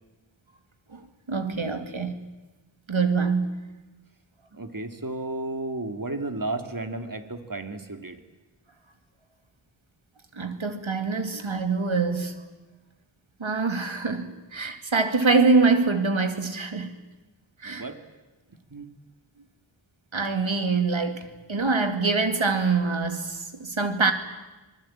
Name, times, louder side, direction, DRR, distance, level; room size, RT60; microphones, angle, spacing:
voice 1, 0.9-2.2 2.9-3.6 10.4-12.3 13.4-16.9 17.6-17.9 20.1-24.1, right 4 dB, 80° right, 2.4 m, -24 dB
voice 2, 4.5-8.2 17.6-18.0 18.7-18.9, right 2 dB, 45° right, 2.5 m, -33 dB
26.0 x 20.5 x 8.8 m
wide cardioid pair, 40°, 47 cm